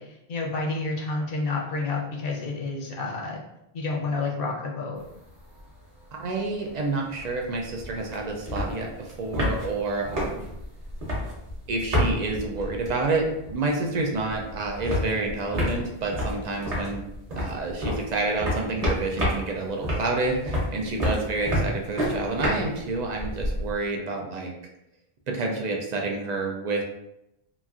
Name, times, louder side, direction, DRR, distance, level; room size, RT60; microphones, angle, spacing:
voice 1, 0.0-3.4 3.7-5.0, left 3 dB, 65° left, -1 dB, 0.8 m, -29 dB
sound 1, 5.0-5.7 6.0-6.1 6.3-13.7 14.0-23.7, equal, 40° right, 0.9 m, -30 dB
voice 2, 6.2-10.5 11.7-17.0 17.4-24.5 25.3-26.8, right 3 dB, 55° right, 1 dB, 0.5 m, -29 dB
2.9 x 2.6 x 2.4 m, 0.85 s
omnidirectional pair, 1.1 m